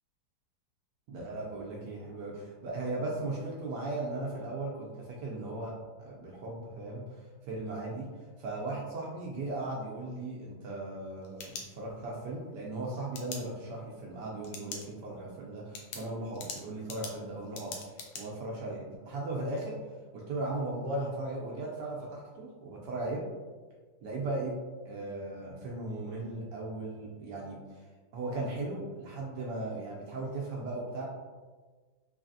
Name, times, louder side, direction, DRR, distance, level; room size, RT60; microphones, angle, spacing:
voice 1, 1.1-5.7 6.0-8.1 8.4-19.7 20.1-23.2 24.0-24.6 24.8-27.8 28.1-31.1, right 2 dB, 70° right, -2 dB, 1.1 m, -37 dB
sound 1, 11.0-12.2 13.1-13.4 14.4-14.9 15.2-15.3 15.7-18.2, left 4 dB, 75° left, 1.3 m, -42 dB
4.0 x 3.2 x 2.5 m, 1.4 s
omnidirectional pair, 2.1 m